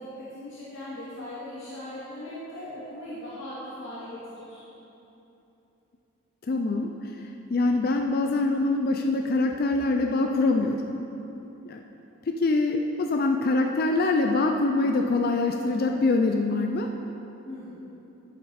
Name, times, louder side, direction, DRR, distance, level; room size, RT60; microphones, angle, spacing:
voice 1, 0.0-4.6 17.4-17.8, left 1 dB, 65° left, -10 dB, 2.1 m, -39 dB
voice 2, 6.5-7.1 7.5-10.9 11.6-11.8 12.3-16.9, left 3 dB, 45° left, 3 dB, 0.4 m, -24 dB
12.0 x 7.4 x 4.1 m, 3.0 s
head